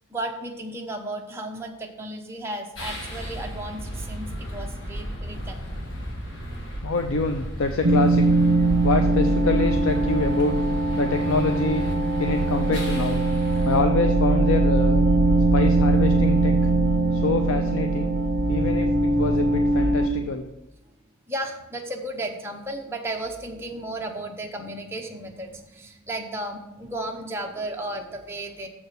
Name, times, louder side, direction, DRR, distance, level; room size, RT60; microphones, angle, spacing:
voice 1, 0.1-5.7 21.3-28.7, right 1 dB, 10° right, 1 dB, 0.7 m, -34 dB
sound 1, 2.8-13.8, equal, 60° left, 1.6 m, -34 dB
voice 2, 6.8-8.3 8.8-10.6 11.0-11.8 12.2-13.2 13.6-15.0 15.5-16.5 17.1-18.1 18.5-20.4, left 3 dB, 80° left, 6 dB, 0.5 m, -26 dB
sound 2, 7.8-20.1, right 2 dB, 65° right, 0.8 m, -21 dB
7.2 x 4.6 x 6.5 m, 0.96 s
head